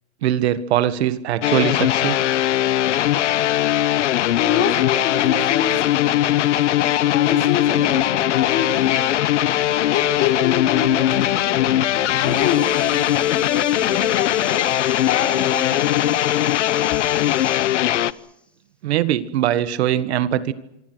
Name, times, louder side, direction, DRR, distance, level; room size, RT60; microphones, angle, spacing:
voice 1, 0.2-2.2 18.8-20.5, right 11 dB, 65° right, 13 dB, 1.7 m, -21 dB
sound 1, 1.4-18.1, left 13 dB, 90° left, 1.0 m, -20 dB
voice 2, 4.3-6.2 6.7-9.1 9.9-11.8 12.1-16.3, left 8 dB, 35° left, 4 dB, 4.3 m, -27 dB
sound 2, 7.6-14.1, right 10 dB, 40° right, 3.0 m, -41 dB
sound 3, 11.7-18.4, left 2 dB, 5° left, 1.4 m, -39 dB
27.0 x 24.5 x 6.2 m, 0.81 s
supercardioid pair, 150°, 34 cm